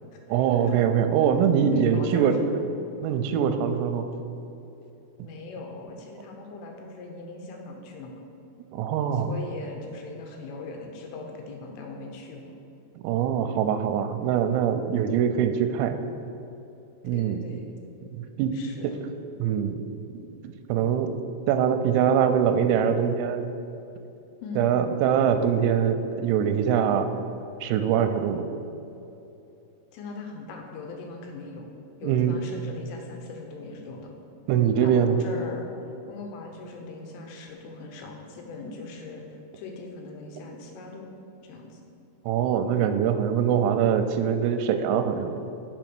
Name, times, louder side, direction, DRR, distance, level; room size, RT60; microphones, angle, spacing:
voice 1, 0.3-2.4 3.0-4.1 8.7-9.3 13.0-16.0 17.0-17.4 18.1-18.5 18.8-18.9 19.4-19.8 20.1-20.3 20.7-21.1 21.5-23.5 24.6-27.1 27.6-28.5 32.0-32.4 34.5-35.2 42.3-45.3, right 8 dB, 90° right, 8 dB, 3.3 m, -23 dB
voice 2, 1.7-2.7 5.2-8.2 9.1-12.4 17.1-17.6 18.5-19.0 24.4-24.7 29.9-31.7 32.0-34.1 34.8-35.7 36.1-41.1 41.4-41.8, left 3 dB, 80° left, 2 dB, 3.4 m, -40 dB
7.0 x 6.6 x 6.1 m, 2.8 s
omnidirectional pair, 5.9 m